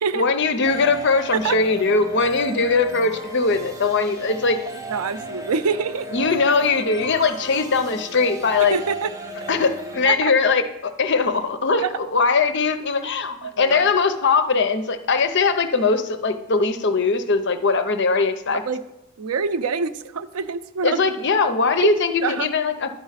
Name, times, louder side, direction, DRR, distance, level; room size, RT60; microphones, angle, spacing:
voice 1, 0.1-4.6 6.1-8.8 9.5-11.8 12.1-18.6 20.8-22.9, left 4 dB, 50° left, 9 dB, 0.6 m, -20 dB
sound 1, 0.6-10.2, right 1 dB, 15° right, 0.9 m, -35 dB
voice 2, 4.9-6.1 8.7-9.1 10.0-10.3 11.8-11.9 13.4-13.8 18.6-18.8 19.2-21.0 21.8-21.9 22.2-22.5, right 5 dB, 80° right, 12 dB, 0.5 m, -25 dB
10.5 x 4.7 x 5.7 m, 0.91 s
head